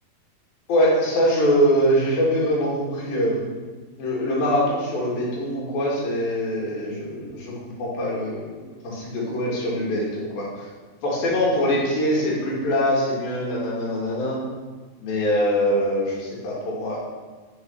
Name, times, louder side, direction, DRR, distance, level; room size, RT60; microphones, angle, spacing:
voice 1, 0.7-3.5 4.0-7.5 7.8-8.5 8.8-10.5 11.0-14.4 15.0-17.0, equal, 70° left, -5 dB, 4.1 m, -23 dB
8.8 x 7.0 x 6.0 m, 1.4 s
omnidirectional pair, 4.5 m